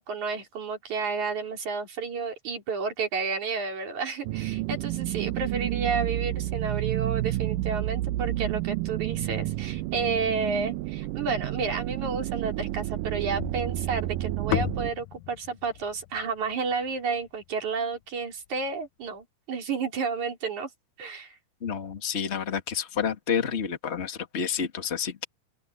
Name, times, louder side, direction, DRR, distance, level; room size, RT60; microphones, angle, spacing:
voice 1, 0.0-20.7 21.0-21.3, right 5 dB, 50° right, 4.8 m, -31 dB
sound 1, 4.2-14.9, right 16 dB, 85° right, 1.9 m, -30 dB
sound 2, 13.4-17.7, left 15 dB, 90° left, 1.7 m, -35 dB
voice 2, 21.6-25.2, left 7 dB, 60° left, 0.7 m, -29 dB
open air
omnidirectional pair, 4.5 m